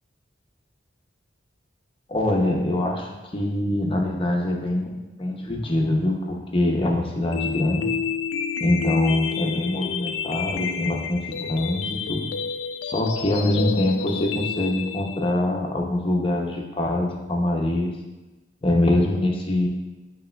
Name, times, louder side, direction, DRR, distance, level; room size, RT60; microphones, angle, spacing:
voice 1, 2.1-7.9 8.6-12.2 12.8-17.9 18.6-19.7, left 1 dB, 30° left, 0 dB, 0.5 m, -24 dB
sound 1, 7.3-15.3, left 6 dB, 80° left, 0.3 m, -30 dB
7.4 x 2.9 x 2.2 m, 1.1 s
head